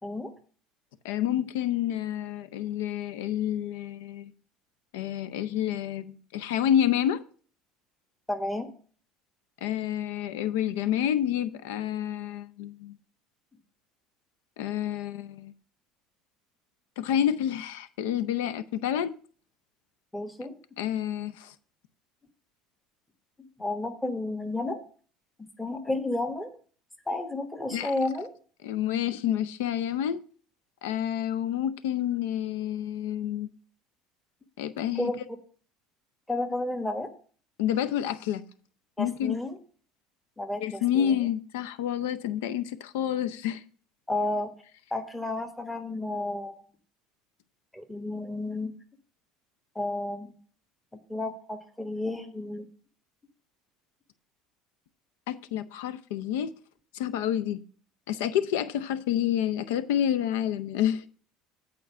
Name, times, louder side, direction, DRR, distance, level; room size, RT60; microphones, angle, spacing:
voice 1, 1.0-4.3 4.9-7.2 9.6-13.0 14.6-15.5 17.0-19.1 20.8-21.5 27.7-27.9 28.6-30.2 30.8-33.5 34.6-35.1 37.6-38.4 39.0-39.4 40.6-43.6 55.3-56.5 56.9-57.6 58.1-61.0, left 10 dB, 80° left, 0.6 m, -28 dB
voice 2, 8.3-8.7 20.1-20.5 23.4-24.8 25.6-26.5 27.1-28.3 34.9-35.1 36.3-37.1 39.0-39.6 40.4-41.2 44.1-44.5 44.9-46.6 47.7-48.7 49.7-50.3 50.9-52.7, left 2 dB, 5° left, 1.3 m, -32 dB
8.5 x 4.5 x 7.1 m
hypercardioid pair, 75°, 0 cm